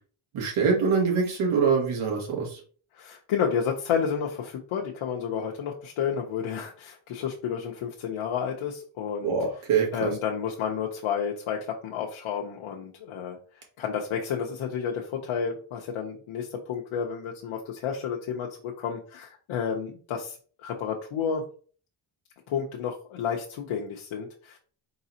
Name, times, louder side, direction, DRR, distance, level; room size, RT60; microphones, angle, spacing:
voice 1, 0.3-2.6 9.2-10.1, right 5 dB, 85° right, 0 dB, 1.9 m, -24 dB
voice 2, 2.9-9.3 9.9-21.4 22.5-24.6, left 7 dB, 85° left, 0 dB, 0.8 m, -31 dB
4.8 x 3.9 x 2.8 m, 0.42 s
cardioid pair, 130°, 48 cm